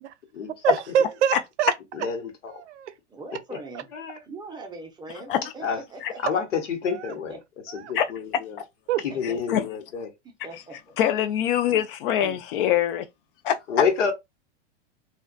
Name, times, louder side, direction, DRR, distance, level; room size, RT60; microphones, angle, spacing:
voice 1, 0.6-1.7 2.5-2.9 6.9-7.1 7.7-7.9 8.9-9.0, right 9 dB, 70° right, 0.5 m, -26 dB
voice 2, 1.9-2.3 3.5-3.6 3.9-4.2 5.6-5.8 6.2-7.4 7.7-8.6 9.1-10.1 13.7-14.1, left 6 dB, 75° left, 0.9 m, -28 dB
voice 3, 3.1-3.9 4.1-6.4 7.1-7.4 9.1-9.4 10.2-10.8 12.2-12.4, right 3 dB, 10° right, 0.5 m, -41 dB
voice 4, 11.0-13.1 13.4-13.8, left 10 dB, 50° left, 0.4 m, -23 dB
2.3 x 2.2 x 2.4 m
hypercardioid pair, 110°, 36 cm